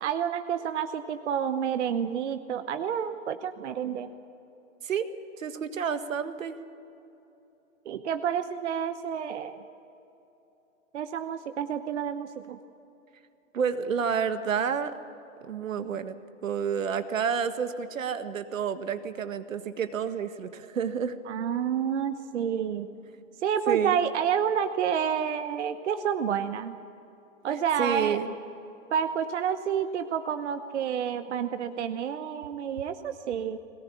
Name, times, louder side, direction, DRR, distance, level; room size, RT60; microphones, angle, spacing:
voice 1, 0.0-4.1 7.9-9.6 10.9-12.6 21.3-22.9 23.4-26.8 27.4-28.2 28.9-33.6, right 8 dB, 60° right, 9 dB, 1.0 m, -29 dB
voice 2, 5.4-6.6 13.5-15.0 15.5-16.2 16.4-21.2 23.7-24.0 27.5-28.3, right 7 dB, 90° right, 10 dB, 1.7 m, -29 dB
21.5 x 18.5 x 8.5 m, 3.0 s
hypercardioid pair, 170°, 38 cm